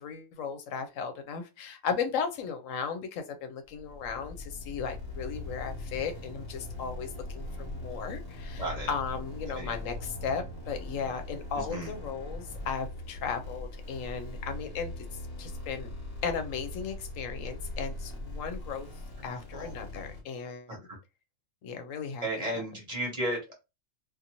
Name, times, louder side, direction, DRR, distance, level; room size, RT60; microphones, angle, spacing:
voice 1, 0.0-15.0 15.4-15.9 16.2-18.9 19.2-20.8 21.6-22.5, left 6 dB, 85° left, 1.0 m, -36 dB
sound 1, 3.6-20.2, left 1 dB, 45° left, 1.1 m, -41 dB
voice 2, 8.6-8.9 9.5-9.7 11.5-11.9 19.2-19.7 20.7-21.0 22.2-23.5, right 1 dB, 30° right, 1.0 m, -35 dB
2.6 x 2.5 x 2.8 m
omnidirectional pair, 1.3 m